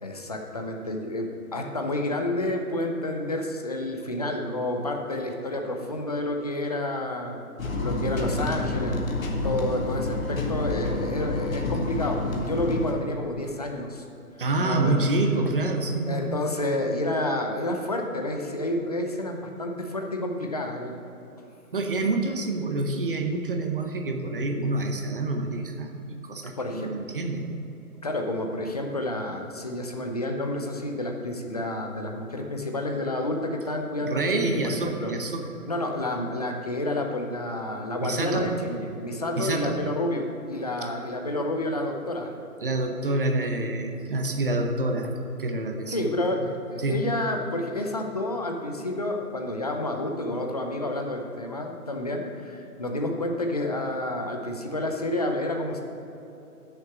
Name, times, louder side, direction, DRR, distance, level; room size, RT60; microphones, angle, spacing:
voice 1, 0.0-7.5 7.7-9.0 9.4-14.0 14.6-15.1 16.1-21.0 21.4-21.5 26.6-26.9 28.0-35.1 35.7-42.3 45.9-55.8, left 1 dB, 25° left, 3 dB, 0.6 m, -29 dB
sound 1, 7.6-12.9, left 2 dB, 60° left, 1.5 m, -28 dB
voice 2, 14.4-16.3 21.7-26.0 26.2-27.5 34.0-35.5 38.0-38.5 39.4-39.8 42.6-45.1 45.4-46.1 46.8-47.1, right 2 dB, 35° right, 4 dB, 0.9 m, -27 dB
8.8 x 6.7 x 7.0 m, 3.0 s
hypercardioid pair, 165°, 45 cm